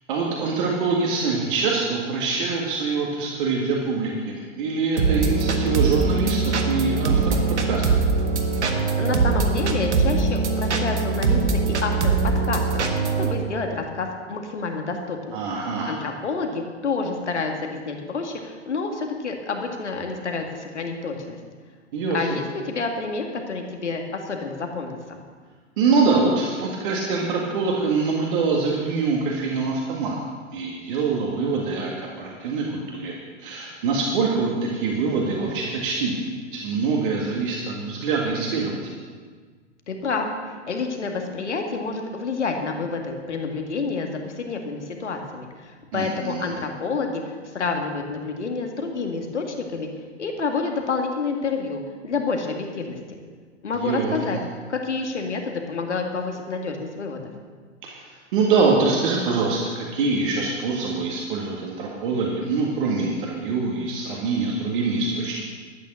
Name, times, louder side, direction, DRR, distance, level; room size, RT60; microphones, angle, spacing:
voice 1, 0.1-7.8 15.3-15.9 21.9-22.2 25.8-30.2 30.5-33.1 33.4-38.8 45.9-46.5 53.8-54.2 57.8-65.4, right 4 dB, 45° right, -2 dB, 1.9 m, -24 dB
sound 1, 5.0-13.3, right 4 dB, 65° right, 1.6 m, -22 dB
voice 2, 9.0-12.2 12.4-12.6 13.2-15.4 15.9-21.4 22.1-25.0 39.9-40.2 40.7-49.9 50.2-53.2 53.6-54.4 54.7-57.3, left 4 dB, 70° left, 3 dB, 2.1 m, -28 dB
12.5 x 9.3 x 6.5 m, 1.6 s
figure-of-eight pair, 105°, 36 cm